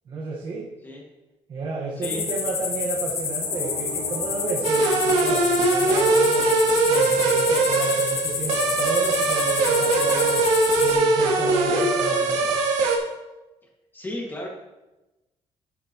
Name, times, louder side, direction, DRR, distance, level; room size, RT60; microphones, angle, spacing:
voice 1, 0.1-0.7 1.5-10.5 10.8-12.5, right 3 dB, 45° right, -3 dB, 1.5 m, -32 dB
sound 1, 2.0-10.9, left 6 dB, 65° left, 1.8 m, -29 dB
sound 2, 3.4-6.4, right 1 dB, 10° right, 3.6 m, -40 dB
sound 3, 4.6-13.0, right 3 dB, 85° right, 2.1 m, -21 dB
voice 2, 13.9-14.5, left 1 dB, 20° left, -2 dB, 2.1 m, -33 dB
12.5 x 8.3 x 3.1 m, 1.1 s
cardioid pair, 150°, 11 cm